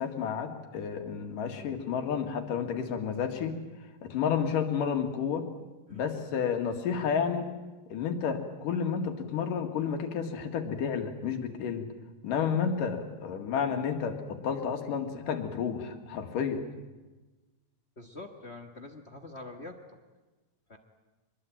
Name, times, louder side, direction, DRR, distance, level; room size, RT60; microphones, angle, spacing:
voice 1, 0.0-3.6 4.0-5.5 5.9-7.5 7.9-11.9 12.2-16.6, left 7 dB, 85° left, 5 dB, 3.6 m, -31 dB
voice 2, 18.0-19.8 20.7-20.8, left 2 dB, 40° left, 6 dB, 0.9 m, -45 dB
24.5 x 21.0 x 9.0 m, 1.2 s
omnidirectional pair, 3.7 m